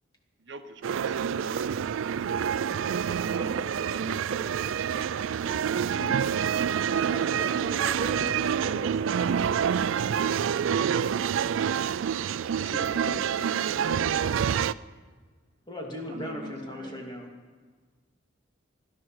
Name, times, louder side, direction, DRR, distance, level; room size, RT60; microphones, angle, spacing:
voice 1, 0.4-1.7 10.1-10.2 10.9-11.4, right 4 dB, 60° right, 7 dB, 1.2 m, -44 dB
sound 1, 0.8-14.7, right 8 dB, 80° right, 0.3 m, -27 dB
voice 2, 2.4-3.2 4.9-5.4 7.1-8.3 12.7-14.4 15.7-17.3, equal, 20° left, 0 dB, 2.6 m, -40 dB
voice 3, 3.4-4.7 5.4-5.6 5.9-6.2 7.9-9.5 16.1-17.1, right 2 dB, 35° right, -2 dB, 1.9 m, -39 dB
17.0 x 12.0 x 6.3 m, 1.4 s
head